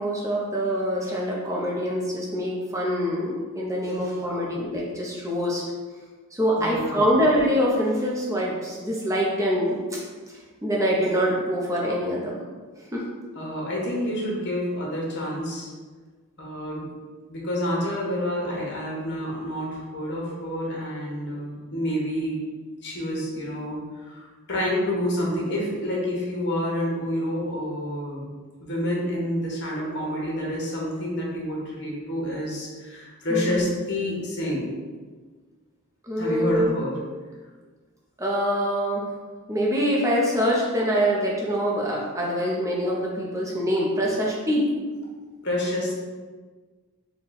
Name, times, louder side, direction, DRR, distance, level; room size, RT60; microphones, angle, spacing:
voice 1, 0.0-5.6 6.3-10.0 10.6-12.4 12.9-13.0 33.3-33.6 36.1-36.7 38.2-39.0 39.5-44.7, equal, 15° right, -3 dB, 0.6 m, -24 dB
voice 2, 6.6-7.0 13.3-15.7 16.4-16.9 17.3-22.5 22.8-24.2 24.5-28.3 28.6-34.7 36.2-37.0 45.4-46.1, left 1 dB, 50° left, -3 dB, 1.1 m, -28 dB
3.9 x 2.3 x 4.0 m, 1.4 s
head